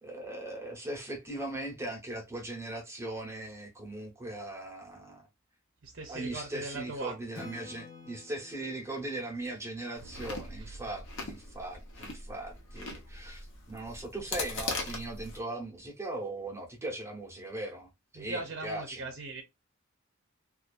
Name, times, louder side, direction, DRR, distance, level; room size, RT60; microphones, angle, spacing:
voice 1, 0.0-5.3 6.1-19.0, right 2 dB, 15° right, 0.9 m, -39 dB
voice 2, 5.8-7.1 18.1-19.4, right 2 dB, 50° right, 0.7 m, -39 dB
Acoustic guitar / Strum, 7.3-10.9, left 3 dB, 20° left, 0.7 m, -51 dB
Chewing mastication, 10.0-15.4, left 3 dB, 60° left, 0.9 m, -40 dB
sound 1, 10.0-12.7, right 3 dB, 80° right, 0.3 m, -51 dB
2.6 x 2.4 x 2.4 m
head